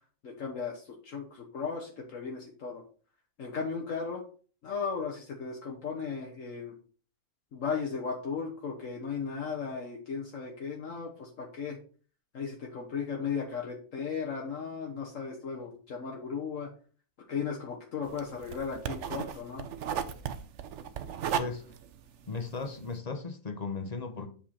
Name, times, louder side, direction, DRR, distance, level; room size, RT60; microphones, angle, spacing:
voice 1, 0.2-2.8 3.4-4.2 4.6-6.8 7.5-11.8 12.3-16.7 17.3-19.7, left 5 dB, 60° left, 1.4 m, -36 dB
sound 1, 18.0-22.9, right 8 dB, 60° right, 0.9 m, -36 dB
voice 2, 22.3-24.3, left 4 dB, 35° left, 0.7 m, -36 dB
7.6 x 5.4 x 4.3 m
omnidirectional pair, 1.5 m